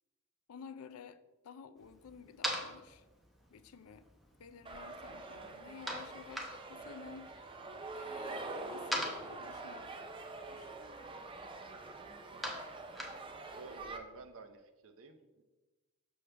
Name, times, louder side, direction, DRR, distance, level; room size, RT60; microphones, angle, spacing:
voice 1, 0.5-3.0 3.5-4.1 4.4-7.6 7.9-10.1 10.5-10.7, left 6 dB, 80° left, 13 dB, 0.4 m, -52 dB
sound 1, 1.8-13.7, equal, ahead, 0.8 m, -45 dB
sound 2, 4.6-14.0, right 3 dB, 25° right, 0.5 m, -46 dB
voice 2, 12.3-12.6 13.6-15.4, right 4 dB, 65° right, 7 dB, 0.6 m, -53 dB
6.4 x 6.2 x 3.3 m, 1.2 s
head